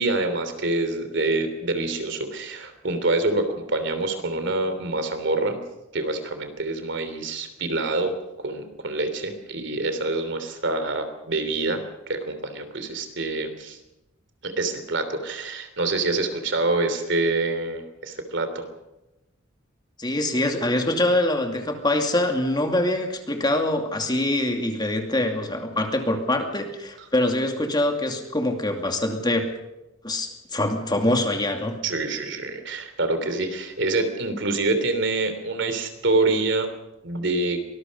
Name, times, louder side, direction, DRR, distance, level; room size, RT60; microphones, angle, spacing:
voice 1, 0.0-5.6 5.9-8.2 8.4-13.8 14.4-18.7 27.0-27.1 31.8-36.7 37.0-37.6, right 2 dB, 60° right, 8 dB, 3.2 m, -26 dB
voice 2, 20.0-29.5 30.0-31.8, left 1 dB, 20° left, 4 dB, 2.5 m, -24 dB
24.5 x 20.0 x 5.4 m, 0.96 s
head